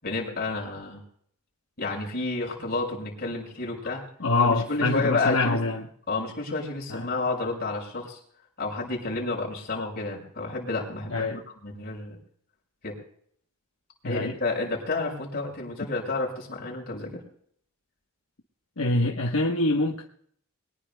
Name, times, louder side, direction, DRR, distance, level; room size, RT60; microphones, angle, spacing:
voice 1, 0.0-1.0 1.8-4.0 4.4-5.6 6.1-8.2 8.6-12.2 12.8-12.9 14.0-17.1, left 3 dB, 45° left, 5.7 m, -30 dB
voice 2, 4.2-5.9 6.9-7.1 11.1-11.4 14.0-14.3 18.8-20.0, left 2 dB, 75° left, 1.2 m, -25 dB
22.5 x 20.0 x 2.3 m
head